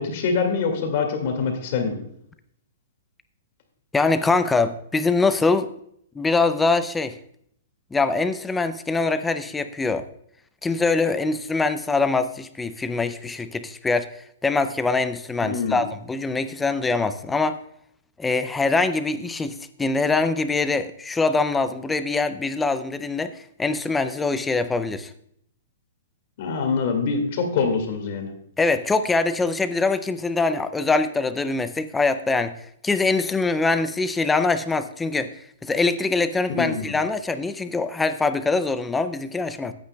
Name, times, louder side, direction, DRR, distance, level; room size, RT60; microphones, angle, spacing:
voice 1, 0.0-2.0 15.4-15.8 26.4-28.3 36.6-36.9, left 5 dB, 40° left, 4 dB, 2.0 m, -24 dB
voice 2, 3.9-5.7 6.2-7.1 7.9-10.0 10.6-14.1 14.4-17.6 18.2-25.1 28.6-32.5 32.8-35.3 35.6-39.7, left 3 dB, 5° left, 11 dB, 0.4 m, -23 dB
17.5 x 8.7 x 2.2 m, 0.69 s
hypercardioid pair, 175°, 0 cm